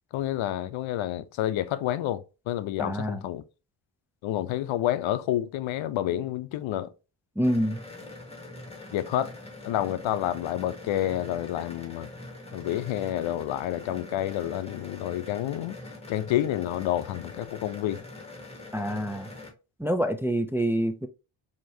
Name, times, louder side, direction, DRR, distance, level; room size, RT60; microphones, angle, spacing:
voice 1, 0.1-3.4 4.2-6.9 8.9-9.3 9.7-12.1 12.5-15.8 16.1-18.0, left 12 dB, 75° left, 0.5 m, -29 dB
voice 2, 2.8-3.2 7.4-7.8 18.7-19.3 19.8-21.1, equal, 5° right, 0.4 m, -26 dB
sound 1, 7.4-19.5, left 2 dB, 15° left, 1.4 m, -44 dB
4.5 x 2.9 x 2.7 m
cardioid pair, 65°, 47 cm